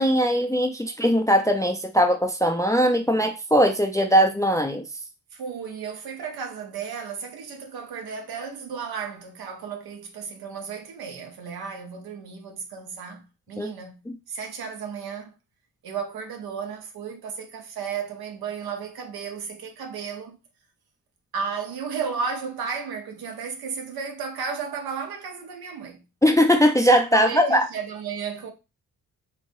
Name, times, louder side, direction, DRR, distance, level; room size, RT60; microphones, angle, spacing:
voice 1, 0.0-4.8 13.6-13.7 14.1-14.2 26.2-27.7, equal, 10° left, 0.4 m, -20 dB
voice 2, 5.3-14.0 14.3-15.3 15.8-20.4 21.3-26.0 27.1-28.5, right 6 dB, 80° right, 1.0 m, -34 dB
3.4 x 3.2 x 2.6 m
cardioid pair, 90°, 36 cm